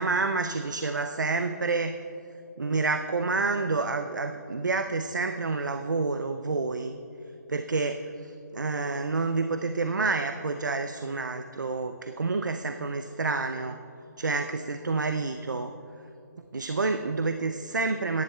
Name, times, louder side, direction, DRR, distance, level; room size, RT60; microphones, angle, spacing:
voice 1, 0.0-2.0 2.6-6.9 7.5-13.8 14.2-15.7 16.5-18.2, right 3 dB, 85° right, 7 dB, 0.6 m, -28 dB
23.5 x 10.5 x 2.3 m, 2.8 s
figure-of-eight pair, 145°, 10 cm